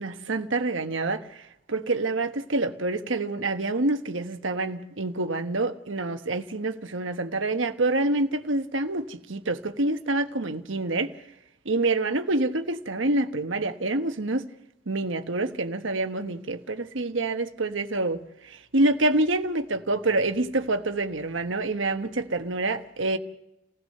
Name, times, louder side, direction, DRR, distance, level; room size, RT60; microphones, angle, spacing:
voice 1, 0.0-11.1 11.6-14.5 14.9-23.2, right 2 dB, 80° right, 1.3 m, -27 dB
29.5 x 16.0 x 6.6 m
head